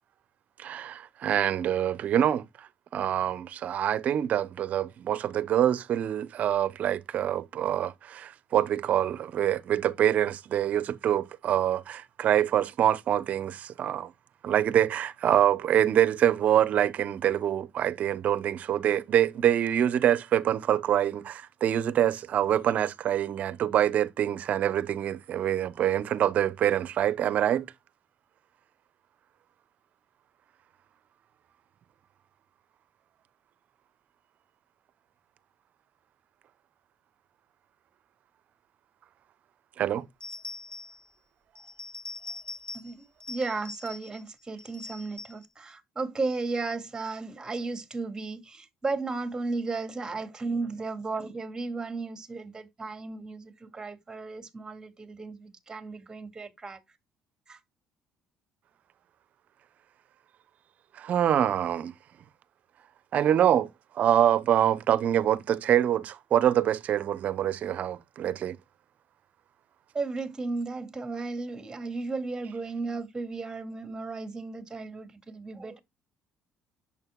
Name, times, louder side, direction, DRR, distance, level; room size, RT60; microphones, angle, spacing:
voice 1, 0.6-14.1 14.4-27.7 39.8-40.1 61.0-61.9 63.1-63.7 64.0-68.6, right 10 dB, 60° right, 0.8 m, -25 dB
sound 1, 40.2-41.1 41.6-42.9 43.2-44.2 44.6-45.5, left 2 dB, 30° left, 1.8 m, -42 dB
voice 2, 42.7-56.8 57.5-57.6 69.9-75.8, right 3 dB, 25° right, 2.2 m, -34 dB
10.5 x 7.4 x 2.3 m
supercardioid pair, 65°, 3 cm